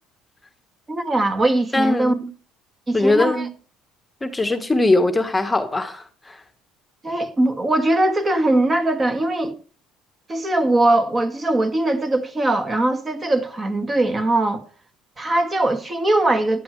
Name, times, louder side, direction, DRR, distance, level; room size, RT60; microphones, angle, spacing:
voice 1, 0.9-2.1 2.9-3.5 7.0-9.6 10.3-14.6 15.2-16.6, right 2 dB, 25° right, 2.0 m, -20 dB
voice 2, 1.7-2.3 2.9-3.5 4.2-6.4, left 2 dB, 15° left, 1.3 m, -21 dB
14.0 x 11.0 x 3.2 m
supercardioid pair, 100°, 0 cm